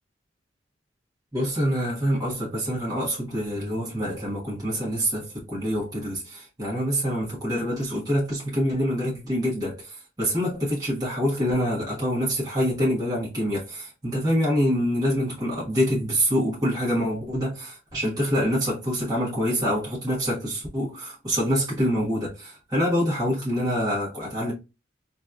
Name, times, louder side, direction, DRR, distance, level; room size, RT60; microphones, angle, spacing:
voice 1, 1.3-24.5, equal, 20° right, 1.3 m, -26 dB
4.2 x 2.6 x 2.3 m
head